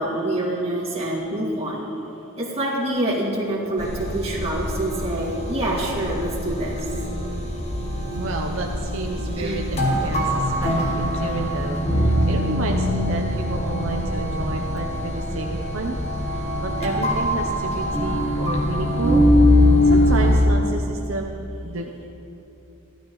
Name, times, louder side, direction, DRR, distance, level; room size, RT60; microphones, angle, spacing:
voice 1, 0.0-1.9 2.4-6.8 9.3-9.6, right 1 dB, 25° right, -5 dB, 2.2 m, -26 dB
sound 1, 3.8-20.5, left 1 dB, 30° left, 1.4 m, -22 dB
voice 2, 8.1-16.0 16.3-19.2 19.9-21.3 21.6-22.1, right 2 dB, 65° right, 2 dB, 0.7 m, -31 dB
16.0 x 12.5 x 3.1 m, 2.9 s
head